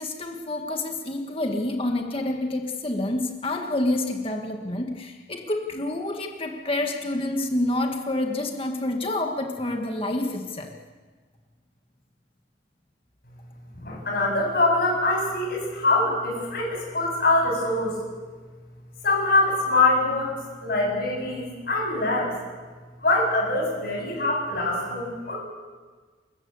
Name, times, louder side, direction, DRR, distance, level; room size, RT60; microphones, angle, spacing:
voice 1, 0.0-10.7, left 1 dB, 30° left, 2 dB, 1.8 m, -28 dB
voice 2, 13.8-17.9 19.0-22.3 23.0-25.4, left 2 dB, 50° left, 0 dB, 7.7 m, -24 dB
29.0 x 14.0 x 8.1 m, 1.4 s
head